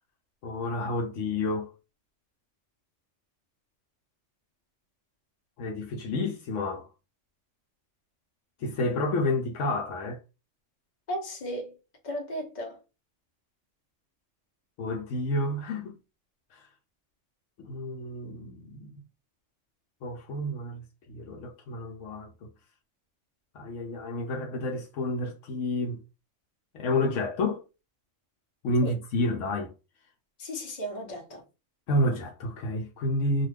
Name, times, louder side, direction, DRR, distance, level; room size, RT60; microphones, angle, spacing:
voice 1, 0.4-1.7 5.6-6.9 8.6-10.2 14.8-15.9 16.5-16.7 17.6-19.0 20.0-22.3 23.5-26.0 26.7-27.6 28.6-29.7 31.9-33.5, left 1 dB, 80° left, 1.0 m, -30 dB
voice 2, 11.1-11.7 12.0-12.8 28.8-28.9 30.4-31.4, equal, 40° left, 1.0 m, -35 dB
2.5 x 2.3 x 3.2 m
omnidirectional pair, 1.3 m